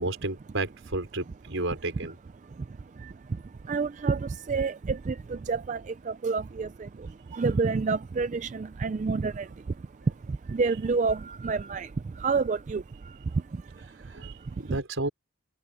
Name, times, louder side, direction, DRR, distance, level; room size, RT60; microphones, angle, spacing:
voice 1, 0.0-2.2 14.0-15.1, right 2 dB, 65° right, 5.1 m, -32 dB
voice 2, 3.0-9.5 10.3-13.9 14.4-14.8, right 4 dB, 35° right, 0.3 m, -29 dB
head